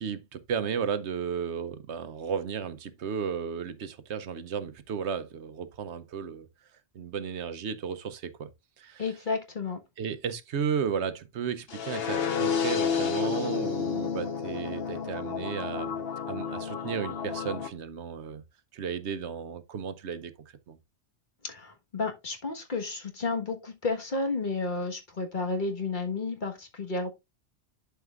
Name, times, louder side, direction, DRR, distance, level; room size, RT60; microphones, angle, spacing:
voice 1, 0.0-6.5 6.9-8.5 8.8-9.1 10.0-16.0 16.3-18.4 18.7-20.3 20.7-20.8, right 7 dB, 75° right, 1.0 m, -34 dB
voice 2, 9.0-9.8 21.4-27.1, left 3 dB, 45° left, 1.5 m, -32 dB
sound 1, 11.7-17.7, left 6 dB, 60° left, 1.1 m, -31 dB
11.5 x 4.6 x 2.4 m
omnidirectional pair, 1.2 m